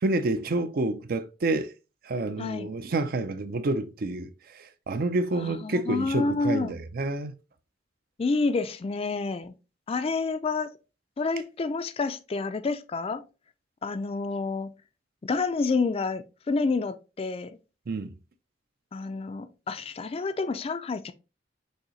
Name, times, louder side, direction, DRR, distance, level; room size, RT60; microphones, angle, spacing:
voice 1, 0.0-1.7 2.0-7.3 17.9-18.1, right 2 dB, 55° right, 0.5 m, -29 dB
voice 2, 5.4-6.7 8.2-9.5 9.9-10.7 11.2-13.2 13.8-14.7 15.2-17.5 18.9-21.1, left 3 dB, 30° left, 0.4 m, -29 dB
6.4 x 2.7 x 3.0 m
head